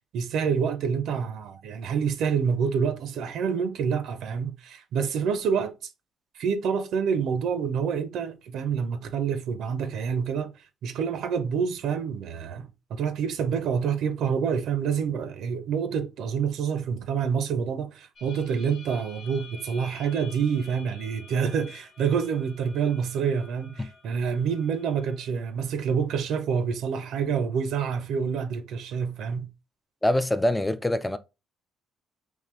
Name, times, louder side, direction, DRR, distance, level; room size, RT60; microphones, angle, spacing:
voice 1, 0.1-5.7 6.4-10.5 10.8-29.5, right 6 dB, 75° right, 0.6 m, -27 dB
sound 1, 18.2-25.7, left 3 dB, 50° left, 1.0 m, -49 dB
voice 2, 30.0-31.2, left 1 dB, 10° left, 0.4 m, -24 dB
3.8 x 3.1 x 3.1 m
cardioid pair, 95°, 0 cm